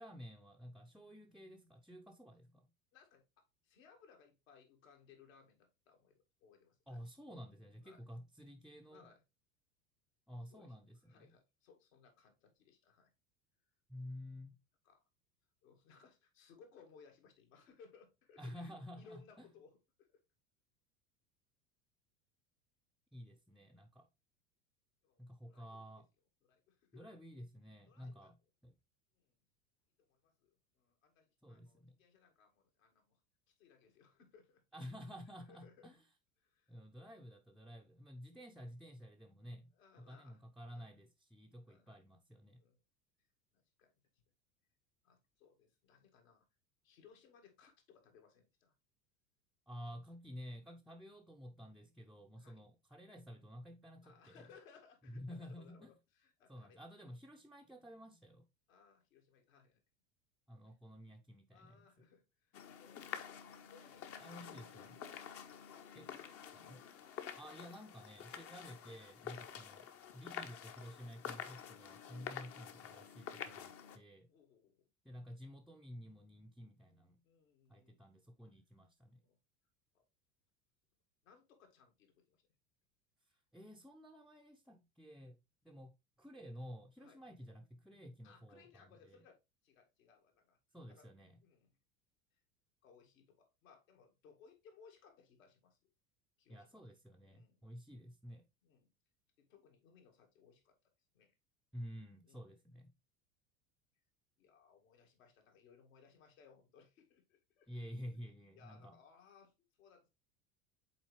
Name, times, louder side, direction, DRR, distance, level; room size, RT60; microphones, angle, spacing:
voice 1, 0.0-2.7 6.9-9.1 10.3-11.3 13.9-14.6 18.4-19.5 23.1-24.1 25.2-26.1 26.9-28.3 28.6-28.7 31.4-32.0 34.7-36.0 36.7-39.7 40.0-42.6 49.7-54.5 55.1-55.9 56.5-58.5 60.5-62.1 64.2-65.0 65.9-66.1 66.5-66.8 67.4-74.3 75.0-77.2 77.7-79.2 83.5-85.4 85.6-85.9 86.2-89.2 90.7-91.4 96.5-98.4 101.7-102.9 107.7-109.0, equal, ahead, 0.6 m, -52 dB
voice 2, 2.9-7.0 7.8-8.0 8.9-9.2 10.5-10.8 11.1-13.1 14.8-15.0 15.6-20.2 25.0-25.9 26.4-27.2 27.9-28.3 29.1-29.4 30.1-33.2 33.5-34.6 35.5-35.9 36.4-36.7 37.0-37.2 39.7-40.4 40.7-40.9 41.7-41.9 42.6-42.8 43.5-43.9 45.0-46.5 46.8-48.7 52.4-52.6 54.0-56.8 58.7-59.8 61.5-64.6 65.9-66.6 69.4-69.6 74.3-74.7 77.2-78.0 79.2-79.4 79.9-80.0 81.2-82.4 87.0-87.2 88.2-90.6 90.9-91.1 91.4-91.7 92.3-92.4 92.8-95.9 96.4-96.8 97.2-97.7 98.6-98.9 99.4-100.8 101.1-101.3 102.2-102.5 104.4-107.9 108.5-110.1, left 6 dB, 70° left, 2.0 m, -65 dB
sound 1, 62.5-74.0, left 8 dB, 35° left, 0.8 m, -49 dB
7.6 x 4.2 x 3.1 m
figure-of-eight pair, 80°, 42 cm